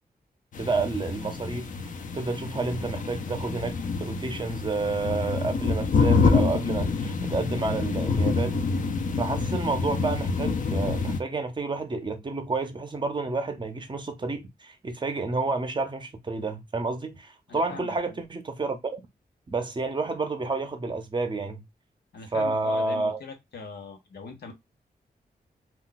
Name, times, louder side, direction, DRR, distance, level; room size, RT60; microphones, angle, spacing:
sound 1, 0.5-11.2, left 4 dB, 55° left, 0.5 m, -27 dB
voice 1, 0.6-1.7 2.1-8.6 9.2-19.0 19.5-21.6 22.3-23.2, right 3 dB, 30° right, 0.6 m, -30 dB
voice 2, 17.5-18.2 22.1-24.5, left 4 dB, 90° left, 0.9 m, -41 dB
2.3 x 2.2 x 3.9 m
wide cardioid pair, 115°, 16 cm